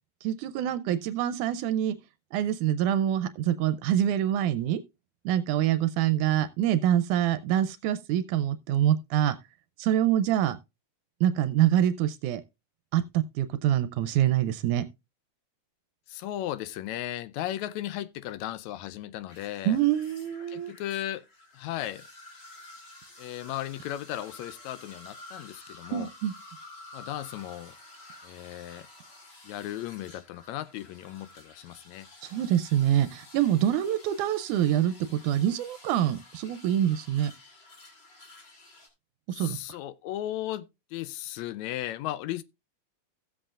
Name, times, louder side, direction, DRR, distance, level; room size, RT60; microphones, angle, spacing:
voice 1, 0.2-2.0 2.3-4.8 5.3-9.4 9.8-10.6 11.2-12.4 12.9-14.9 19.7-20.7 25.9-26.3 32.2-37.3 39.3-39.6, right 11 dB, 85° right, 2.1 m, -25 dB
voice 2, 16.1-19.8 20.5-21.2 21.5-22.1 23.2-26.1 26.9-27.8 28.2-28.9 29.4-32.1 39.3-42.4, left 13 dB, 75° left, 1.8 m, -36 dB
sound 1, 19.3-38.9, left 2 dB, 35° left, 2.8 m, -51 dB
15.5 x 7.7 x 2.4 m
omnidirectional pair, 3.5 m